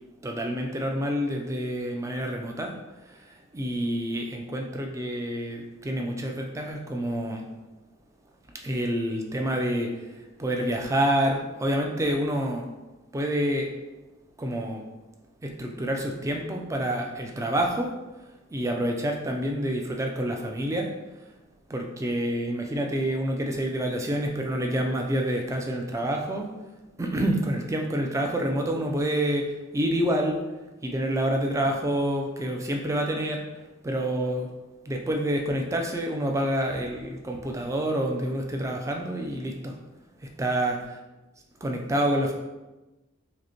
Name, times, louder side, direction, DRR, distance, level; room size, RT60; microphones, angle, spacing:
voice 1, 0.2-2.8 3.1-7.5 8.6-12.7 13.1-13.7 14.4-14.9 15.4-17.9 18.5-20.9 21.7-26.5 27.0-30.4 30.8-33.5 33.8-34.5 34.9-39.8 40.2-40.8 41.6-42.3, right 1 dB, 15° right, 2 dB, 0.3 m, -28 dB
5.0 x 2.1 x 2.9 m, 1.1 s
head